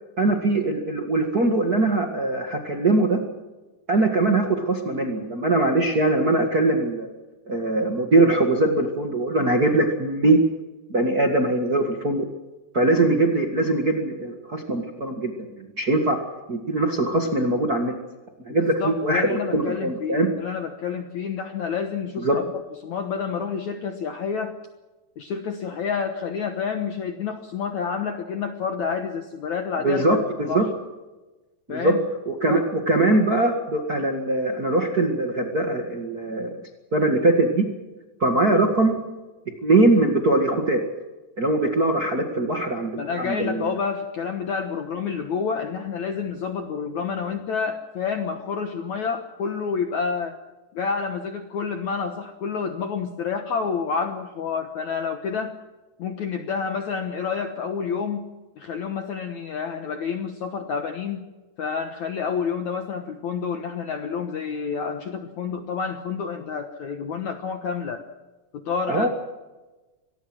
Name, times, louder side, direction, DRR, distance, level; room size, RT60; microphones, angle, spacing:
voice 1, 0.2-3.2 3.9-7.1 7.5-10.4 10.9-12.2 12.7-15.3 15.6-16.2 16.5-17.9 18.5-20.3 22.2-22.4 29.8-30.6 31.7-31.9 32.3-36.5 36.9-37.7 38.2-38.9 39.6-40.8 41.4-43.7 68.9-69.1, right 2 dB, 45° right, 2 dB, 1.2 m, -21 dB
voice 2, 18.5-22.4 22.8-24.6 25.2-30.7 31.7-32.0 32.5-32.7 43.0-50.4 50.7-55.6 56.0-58.3 58.6-61.2 61.6-68.1 68.5-69.1, left 6 dB, 70° left, 6 dB, 1.9 m, -29 dB
25.0 x 19.0 x 6.2 m, 1.1 s
omnidirectional pair, 5.0 m